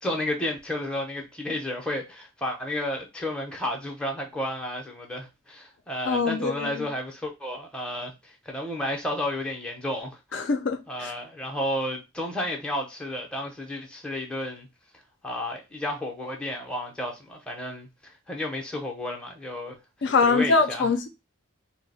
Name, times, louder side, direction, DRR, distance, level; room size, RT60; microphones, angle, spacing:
voice 1, 0.0-10.5 10.9-14.7 15.2-19.8 20.2-20.9, left 1 dB, 5° left, 0.5 m, -32 dB
voice 2, 6.1-6.9 10.3-11.1 20.0-21.1, left 4 dB, 60° left, 0.4 m, -24 dB
2.8 x 2.0 x 4.0 m
head